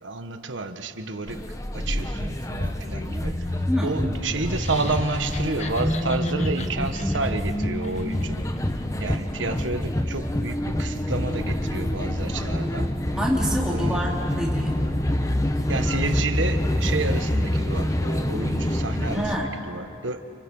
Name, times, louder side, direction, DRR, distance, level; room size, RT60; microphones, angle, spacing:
voice 1, 0.0-1.5 1.7-8.4 9.0-12.9 13.7-14.2 15.7-20.2, right 3 dB, 85° right, 8 dB, 1.4 m, -30 dB
sound 1, 1.3-19.4, left 1 dB, 15° left, 0.9 m, -26 dB
sound 2, 4.4-8.6, left 4 dB, 35° left, 1.4 m, -42 dB
voice 2, 13.1-14.8 19.1-19.5, equal, 5° right, -4 dB, 3.4 m, -27 dB
30.0 x 29.5 x 5.5 m, 2.5 s
head